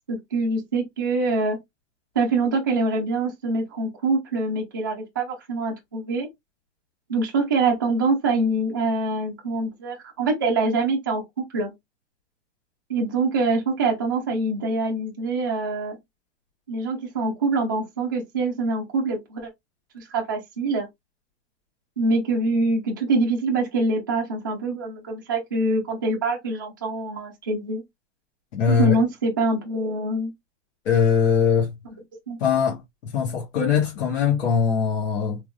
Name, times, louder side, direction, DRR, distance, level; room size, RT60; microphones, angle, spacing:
voice 1, 0.1-1.6 2.1-6.3 7.1-11.7 12.9-16.0 16.7-19.5 19.9-20.9 22.0-27.8 28.7-30.3 32.3-32.4, right 3 dB, 20° right, 0.3 m, -24 dB
voice 2, 28.5-29.0 30.8-31.8 32.4-35.4, left 6 dB, 90° left, 1.6 m, -21 dB
3.5 x 2.8 x 2.2 m
supercardioid pair, 180°, 37 cm